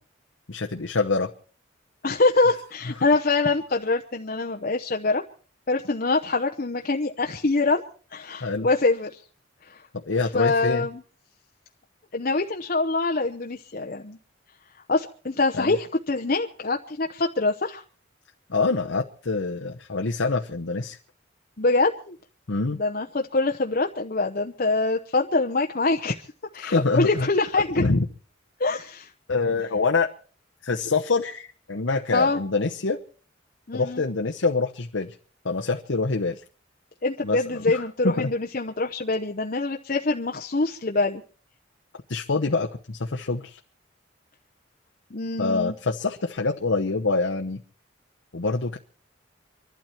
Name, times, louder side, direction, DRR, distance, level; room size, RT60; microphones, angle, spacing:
voice 1, 0.5-1.3 8.4-8.7 9.9-10.9 15.5-15.8 18.5-21.0 22.5-22.8 26.6-27.3 27.8-28.1 29.3-30.1 30.6-33.0 33.7-35.1 35.4-36.4 37.2-37.4 37.7-38.3 42.1-43.6 45.4-47.6 48.3-48.8, left 3 dB, 80° left, 2 dB, 1.0 m, -25 dB
voice 2, 2.0-5.2 5.7-7.8 8.1-9.2 9.6-9.8 10.3-11.0 12.1-14.2 14.9-17.8 21.6-22.2 22.7-26.2 26.5-27.8 28.6-29.1 32.1-32.4 33.7-34.0 37.0-41.2 45.1-45.7, left 3 dB, 45° left, 3 dB, 0.9 m, -24 dB
25.5 x 12.0 x 4.5 m, 0.42 s
head